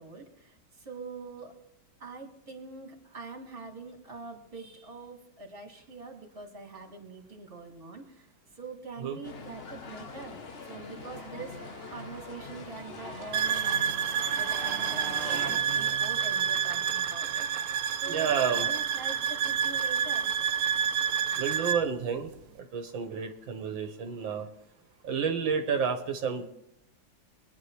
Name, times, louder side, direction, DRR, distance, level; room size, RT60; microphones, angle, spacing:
voice 1, 0.0-1.6 2.0-8.3 8.5-10.4 10.7-11.6 11.9-14.0 14.4-20.3, right 4 dB, 30° right, 2 dB, 2.3 m, -44 dB
Motorcycle, 9.1-21.2, right 5 dB, 45° right, 1.1 m, -46 dB
sound 1, 9.2-15.6, left 4 dB, 45° left, 0.8 m, -44 dB
sound 2, 13.3-21.8, right 8 dB, 65° right, 0.9 m, -29 dB
voice 2, 18.1-18.7 21.4-22.3 22.6-24.5 25.0-26.5, right 6 dB, 80° right, 6 dB, 1.8 m, -30 dB
24.0 x 9.9 x 3.2 m, 0.83 s
omnidirectional pair, 2.1 m